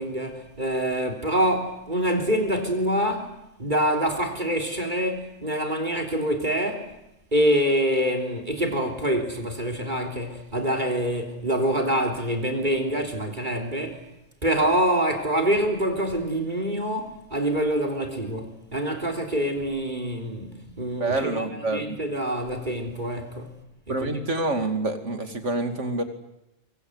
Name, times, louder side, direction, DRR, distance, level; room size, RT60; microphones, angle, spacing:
voice 1, 0.0-3.3 3.6-6.9 7.3-14.0 14.4-21.5 21.7-23.6 23.9-24.2, equal, 40° right, 3.8 m, -26 dB
voice 2, 21.0-22.0 23.9-26.0, right 2 dB, 70° right, 2.9 m, -27 dB
25.0 x 24.0 x 8.1 m
omnidirectional pair, 1.3 m